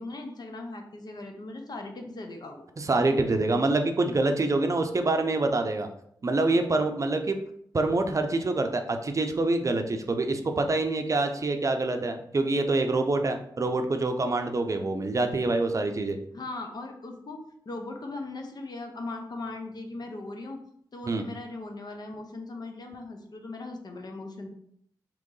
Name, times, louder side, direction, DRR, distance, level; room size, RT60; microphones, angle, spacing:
voice 1, 0.0-2.7 16.3-20.6 20.9-24.5, left 2 dB, 60° left, 4 dB, 0.7 m, -39 dB
voice 2, 2.8-5.9 6.2-7.4 7.7-16.2 21.1-21.2, right 2 dB, 40° right, 6 dB, 0.5 m, -26 dB
3.7 x 3.0 x 3.8 m, 0.69 s
cardioid pair, 65°, 8 cm